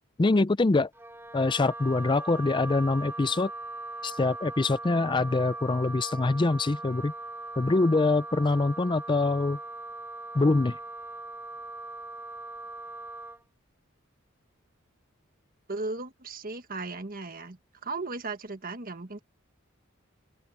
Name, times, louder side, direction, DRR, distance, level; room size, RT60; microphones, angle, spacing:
voice 1, 0.2-0.9 1.3-3.5 4.0-7.1 7.6-9.6 10.3-10.8, left 3 dB, 20° left, 0.4 m, -24 dB
Wind instrument woodwind instrument, 0.9-13.4, right 2 dB, 10° right, 5.2 m, -40 dB
voice 2, 15.7-19.2, right 3 dB, 45° right, 1.6 m, -36 dB
head